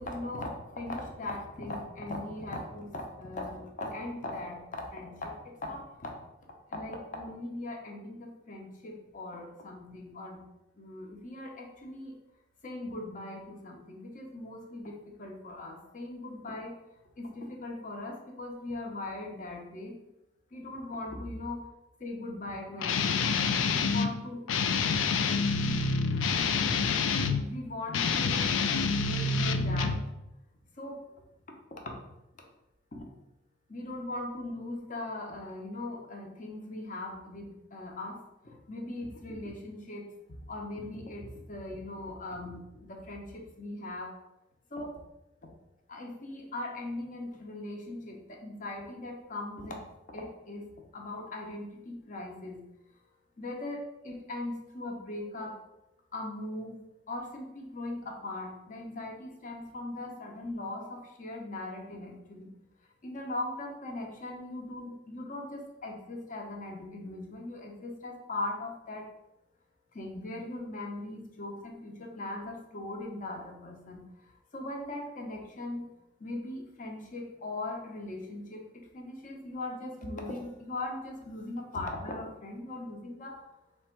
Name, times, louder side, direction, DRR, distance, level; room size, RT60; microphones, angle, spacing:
voice 1, 0.0-6.1 6.7-10.4 10.8-12.2 12.6-16.8 17.2-20.0 20.5-21.6 22.0-23.5 23.8-24.4 27.4-28.5 28.8-30.0 30.8-31.1 31.8-31.9 32.9-33.1 33.7-38.2 38.4-40.1 40.4-44.1 44.7-45.0 45.4-45.5 45.9-50.7 50.9-52.6 53.4-55.6 56.1-56.8 57.1-62.5 63.0-69.1 69.9-74.0 74.5-75.9 76.2-83.5, left 2 dB, 45° left, 1 dB, 0.8 m, -39 dB
Guitar, 22.8-24.1 24.5-27.4 27.9-30.1, left 5 dB, 85° left, 0.4 m, -27 dB
3.4 x 3.1 x 4.4 m, 0.92 s
head